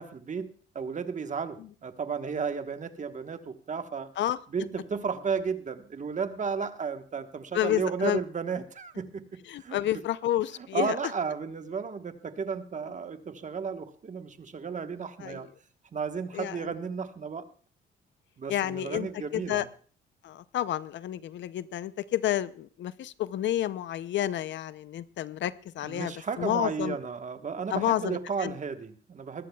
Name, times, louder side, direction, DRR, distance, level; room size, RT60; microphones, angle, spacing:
voice 1, 0.0-4.1 4.5-9.8 10.6-15.5 15.9-17.4 18.4-19.7 25.8-29.5, right 6 dB, 40° right, 8 dB, 1.2 m, -33 dB
voice 2, 7.5-8.2 9.5-11.0 15.2-15.4 16.3-16.6 18.5-19.6 20.2-26.1 26.4-27.0 27.7-28.5, left 12 dB, 65° left, 16 dB, 0.6 m, -30 dB
21.0 x 14.0 x 2.3 m, 0.42 s
cardioid pair, 90°, 20 cm